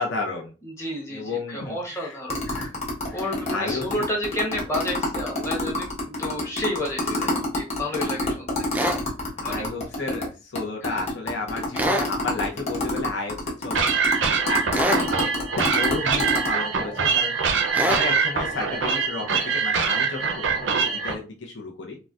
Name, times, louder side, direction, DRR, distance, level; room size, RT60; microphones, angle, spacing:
voice 1, 0.0-0.5 1.1-2.2 2.5-2.7 3.1-3.8 7.1-7.2 8.0-8.1 9.4-13.9 14.2-17.4 17.8-22.0, left 3 dB, 70° left, 1 dB, 0.6 m, -32 dB
voice 2, 0.6-2.4 3.1-8.7 9.4-9.6 10.8-11.0 14.9-15.2 17.7-17.9, left 1 dB, 15° left, -1 dB, 0.8 m, -31 dB
sound 1, 2.3-10.3 10.5-10.6 10.8-16.5, left 2 dB, 35° left, 1.0 m, -27 dB
sound 2, 8.7-9.0 11.7-12.1 14.7-15.1 17.7-18.1, equal, 10° right, 0.3 m, -24 dB
sound 3, 13.7-21.1, right 5 dB, 75° right, 0.6 m, -24 dB
3.9 x 2.1 x 2.4 m, 0.33 s
head